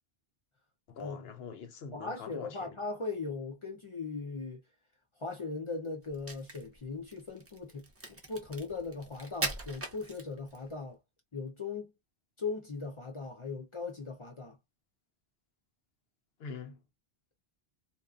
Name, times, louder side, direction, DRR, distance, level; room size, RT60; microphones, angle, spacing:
voice 1, 0.9-2.8 16.4-16.8, left 5 dB, 70° left, 0.8 m, -44 dB
voice 2, 1.9-4.6 5.2-11.0 11.3-11.9 12.4-14.6, left 4 dB, 40° left, 0.5 m, -39 dB
Crack, 6.1-10.7, right 2 dB, 25° right, 0.3 m, -40 dB
2.7 x 2.2 x 2.4 m
omnidirectional pair, 1.1 m